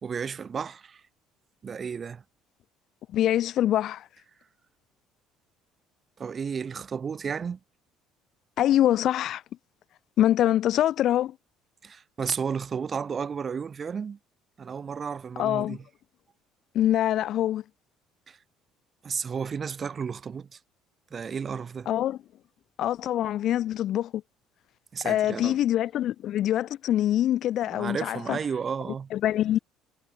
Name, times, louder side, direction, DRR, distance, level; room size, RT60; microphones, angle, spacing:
voice 1, 0.0-1.0 1.6-2.2 6.2-7.6 11.8-14.2 14.6-15.8 18.3-18.4 19.0-20.6 21.1-21.9 24.9-25.6 27.7-29.1, right 6 dB, 30° right, 4.2 m, -33 dB
voice 2, 3.1-4.1 8.6-9.4 10.2-11.3 15.4-15.8 16.7-17.6 21.9-22.2 22.8-24.2 25.0-28.4 29.1-29.6, left 12 dB, 55° left, 0.7 m, -24 dB
cardioid pair, 115°, 0 cm